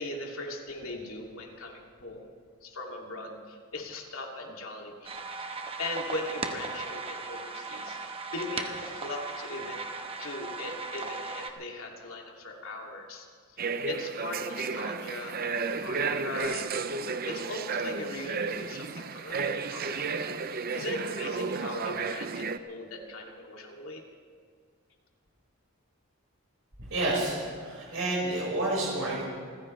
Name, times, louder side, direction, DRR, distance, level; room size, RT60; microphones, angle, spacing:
voice 1, 0.0-2.3 2.6-5.1 5.4-5.5 5.8-8.0 8.3-9.8 10.2-13.3 13.5-13.6 13.9-15.4 15.7-16.7 17.3-20.1 20.5-24.0, left 2 dB, 70° left, 0 dB, 2.6 m, -39 dB
sound 1, 5.0-11.5, right 3 dB, 25° right, 1.1 m, -37 dB
sound 2, 13.6-22.6, right 4 dB, 45° right, 0.6 m, -33 dB
voice 2, 26.9-29.2, right 2 dB, 75° right, -5 dB, 5.4 m, -29 dB
28.5 x 15.0 x 3.3 m, 2.1 s
head